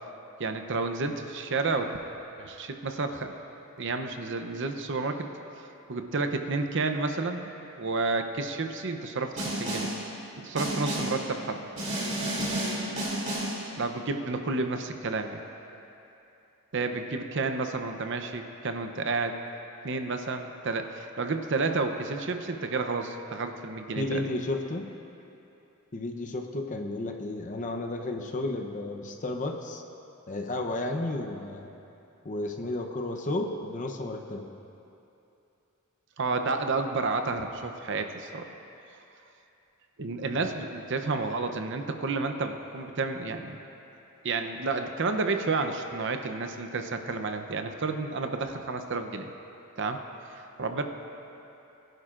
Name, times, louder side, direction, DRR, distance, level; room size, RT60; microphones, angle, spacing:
voice 1, 0.4-2.0 2.4-3.3 3.8-5.3 5.9-7.5 7.8-9.9 10.4-11.6 13.8-15.4 16.7-19.4 19.8-24.3 36.2-38.5 40.0-43.6 44.2-49.3 49.8-50.0 50.3-50.8, right 3 dB, 60° right, 6 dB, 0.7 m, -30 dB
Snare drum, 9.4-10.0 10.6-11.2 11.8-13.6, right 1 dB, 35° right, 2.9 m, -31 dB
voice 2, 23.9-24.9 25.9-29.8 30.3-31.7 32.2-34.5 40.3-40.6, left 2 dB, 35° left, 3 dB, 0.8 m, -33 dB
22.0 x 11.0 x 2.5 m, 2.9 s
head